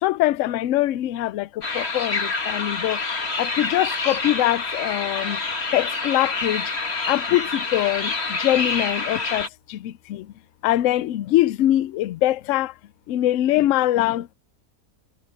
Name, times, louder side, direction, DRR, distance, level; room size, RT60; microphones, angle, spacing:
voice 1, 0.0-3.0 3.4-5.4 5.7-6.7 7.1-10.3 10.6-12.7 13.1-14.3, left 14 dB, 70° left, 0.8 m, -23 dB
sound 1, 1.6-9.5, left 3 dB, 45° left, 2.2 m, -27 dB
omnidirectional pair, 1.6 m